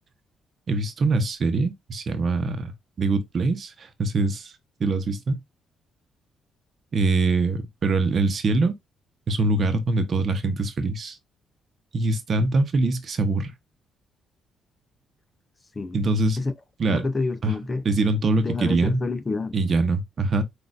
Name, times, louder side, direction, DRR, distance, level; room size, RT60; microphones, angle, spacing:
voice 1, 0.7-2.7 3.0-4.5 4.8-5.4 6.9-8.7 9.3-11.2 11.9-13.5 15.9-16.4 16.8-17.1 17.4-17.5 17.8-19.0 19.5-20.4, right 3 dB, 50° right, 0.9 m, -23 dB
voice 2, 16.9-17.9 18.4-19.6, left 3 dB, 30° left, 0.7 m, -28 dB
6.2 x 2.6 x 2.5 m
cardioid pair, 85°, 0 cm